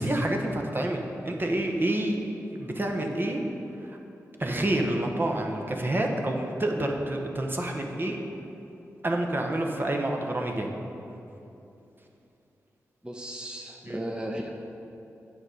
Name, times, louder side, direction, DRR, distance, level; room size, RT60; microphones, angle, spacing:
voice 1, 0.0-2.2 2.5-3.4 3.8-4.0 4.4-8.2 9.0-10.7 13.9-14.0, right 1 dB, 35° right, 2 dB, 1.0 m, -28 dB
voice 2, 13.0-14.5, right 1 dB, 15° right, 0 dB, 0.8 m, -35 dB
8.6 x 5.2 x 4.9 m, 2.9 s
cardioid pair, 45°, 6 cm